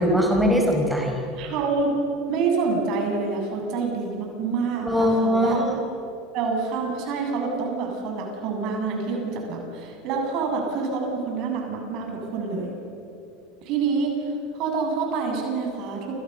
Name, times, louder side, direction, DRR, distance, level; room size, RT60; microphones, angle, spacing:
voice 1, 0.0-1.2 4.9-5.8, equal, 5° right, 1 dB, 5.2 m, -21 dB
voice 2, 1.3-1.9 2.3-5.6 6.3-12.7 13.6-14.1 14.5-16.2, right 4 dB, 55° right, 1 dB, 7.9 m, -27 dB
29.0 x 26.5 x 6.9 m, 2.7 s
hypercardioid pair, 90°, 0 cm